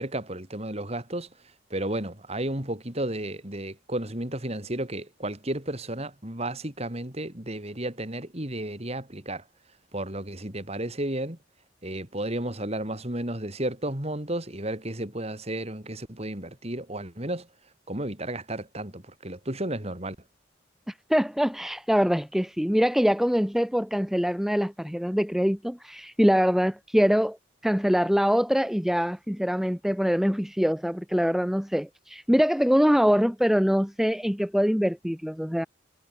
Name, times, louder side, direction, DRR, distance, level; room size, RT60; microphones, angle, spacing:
voice 1, 0.0-9.5 9.9-11.4 11.8-17.5 17.9-20.2, right 1 dB, 35° right, 3.8 m, -33 dB
voice 2, 20.9-27.4 27.6-35.7, equal, ahead, 0.8 m, -24 dB
head